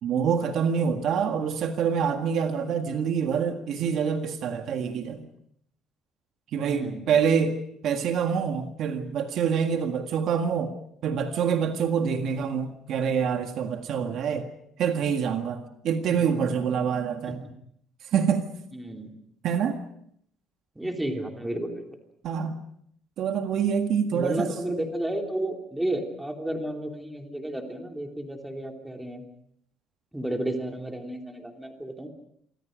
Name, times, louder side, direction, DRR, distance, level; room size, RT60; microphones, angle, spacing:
voice 1, 0.0-5.3 6.5-10.7 11.0-14.5 14.8-17.4 18.1-18.5 19.4-19.8 22.2-22.5 23.2-24.5, right 7 dB, 50° right, 1.7 m, -26 dB
voice 2, 6.7-7.0 16.1-16.4 17.2-17.5 18.7-19.1 20.7-21.9 24.1-29.2 30.1-32.1, right 1 dB, 5° right, 2.9 m, -32 dB
28.5 x 25.0 x 5.2 m
cardioid pair, 175°, 0 cm